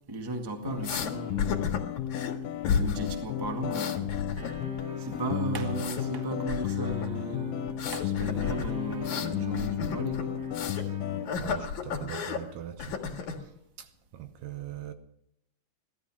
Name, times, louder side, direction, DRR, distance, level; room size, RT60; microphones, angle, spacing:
voice 1, 0.1-1.7 2.7-4.1 5.0-10.3 10.8-10.9 13.4-13.5, right 2 dB, 15° right, 0.9 m, -36 dB
sound 1, 0.7-11.3, left 10 dB, 90° left, 2.8 m, -33 dB
sound 2, 0.8-1.1 1.4-2.3 2.6-3.2 3.4-4.8 5.1-6.0 6.5-7.1 7.7-10.9 11.3-12.4 12.8-13.4, left 6 dB, 65° left, 2.9 m, -33 dB
sound 3, 4.4-12.4, right 2 dB, 30° right, 3.1 m, -46 dB
voice 2, 11.4-13.0 13.8-13.9 14.1-14.9, right 11 dB, 75° right, 2.5 m, -40 dB
17.0 x 13.0 x 6.1 m
omnidirectional pair, 3.9 m